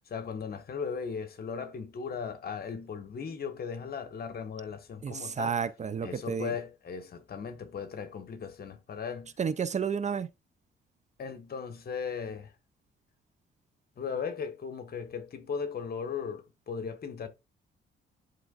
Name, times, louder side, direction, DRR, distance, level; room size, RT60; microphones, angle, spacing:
voice 1, 0.1-5.6 6.0-9.3 11.2-12.5 14.0-17.3, left 6 dB, 50° left, 1.5 m, -37 dB
voice 2, 5.0-6.5 9.4-10.3, right 6 dB, 35° right, 0.6 m, -31 dB
11.5 x 3.8 x 2.5 m
cardioid pair, 90°, 20 cm